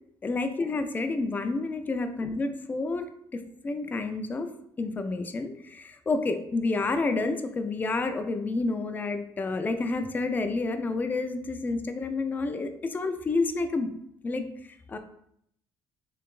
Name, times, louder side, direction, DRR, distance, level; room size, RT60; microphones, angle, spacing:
voice 1, 0.2-4.5 4.8-13.9 14.2-14.5 14.9-15.0, left 3 dB, 20° left, 7 dB, 0.3 m, -29 dB
3.9 x 3.2 x 2.4 m, 0.72 s
cardioid pair, 120°, 8 cm